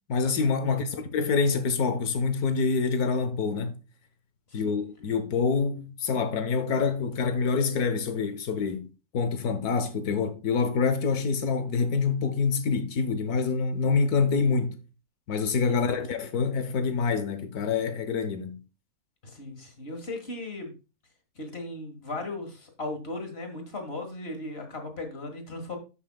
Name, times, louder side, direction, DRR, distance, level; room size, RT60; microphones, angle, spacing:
voice 1, 0.1-3.8 4.5-8.9 9.1-14.8 15.3-18.6, left 5 dB, 80° left, 1.5 m, -26 dB
voice 2, 0.7-1.0 4.5-4.8 15.7-15.8 19.2-20.7 21.4-25.8, left 2 dB, 45° left, 1.9 m, -37 dB
13.5 x 5.6 x 2.3 m
omnidirectional pair, 1.6 m